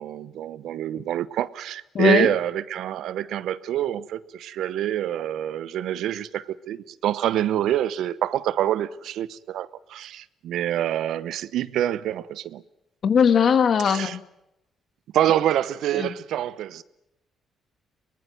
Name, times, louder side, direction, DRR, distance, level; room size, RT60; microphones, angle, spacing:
voice 1, 0.0-12.6 13.8-14.2 15.1-16.8, right 11 dB, 80° right, 0.9 m, -26 dB
voice 2, 1.9-2.3 13.0-14.2 16.0-16.1, left 7 dB, 55° left, 1.7 m, -19 dB
23.5 x 20.0 x 9.2 m
cardioid pair, 90°, 0 cm